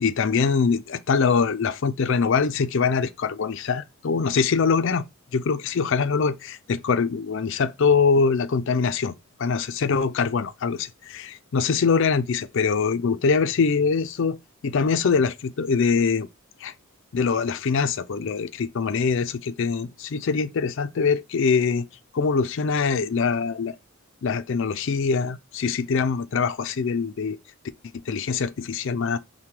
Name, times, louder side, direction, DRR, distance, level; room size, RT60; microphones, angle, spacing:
voice 1, 0.0-5.0 5.3-9.1 9.4-14.4 14.6-16.3 16.6-16.7 17.1-21.9 22.1-23.8 24.2-27.4 28.1-29.2, left 5 dB, 60° left, 0.4 m, -23 dB
5.8 x 2.2 x 3.2 m
head